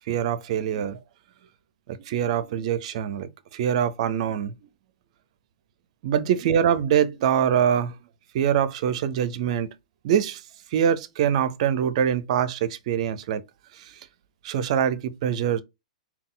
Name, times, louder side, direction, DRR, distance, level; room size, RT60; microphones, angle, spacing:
voice 1, 0.1-1.0 2.1-4.5 6.0-7.9 8.3-9.7 10.0-10.4 10.7-13.4 14.4-15.6, right 9 dB, 55° right, 0.5 m, -24 dB
3.6 x 2.3 x 3.8 m
hypercardioid pair, 120°, 4 cm